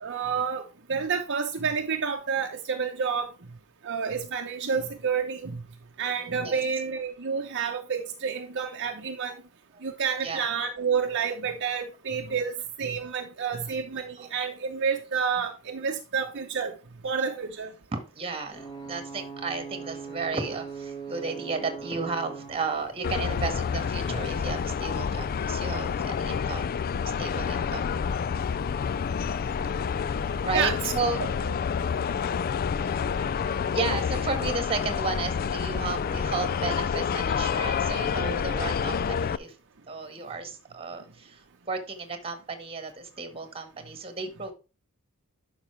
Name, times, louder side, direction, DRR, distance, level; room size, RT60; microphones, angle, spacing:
voice 1, 0.0-3.3 3.8-5.6 6.0-9.3 9.8-16.7 17.0-17.7 30.5-30.7, right 6 dB, 55° right, 0.8 m, -29 dB
voice 2, 17.9-26.7 27.1-28.1 29.3-29.4 30.1-31.2 32.0-32.4 32.8-39.5 39.9-44.5, right 4 dB, 25° right, 1.7 m, -34 dB
Ocean / Boat Water vehicle / Alarm, 18.5-26.1, right 5 dB, 20° left, 1.7 m, -42 dB
sound 1, 23.0-39.4, left 6 dB, 45° left, 0.3 m, -28 dB
11.5 x 5.6 x 3.3 m
head